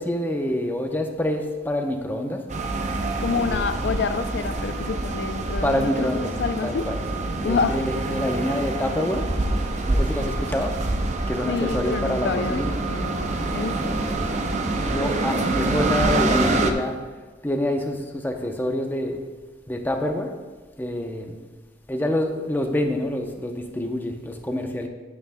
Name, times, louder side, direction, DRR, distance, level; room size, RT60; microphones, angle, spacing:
voice 1, 0.0-2.4 3.3-3.8 5.6-6.3 6.6-9.3 9.9-10.7 11.3-12.8 14.0-14.4 14.7-17.0 17.4-19.2 19.7-20.3 20.8-21.4 21.9-24.9, left 1 dB, 10° left, 3 dB, 0.7 m, -27 dB
sound 1, 2.5-16.7, right 2 dB, 40° right, 0.6 m, -26 dB
voice 2, 3.2-6.1 6.4-6.9 7.4-7.8 11.5-14.0, left 5 dB, 65° left, 10 dB, 0.4 m, -28 dB
9.6 x 9.2 x 2.2 m, 1.4 s
head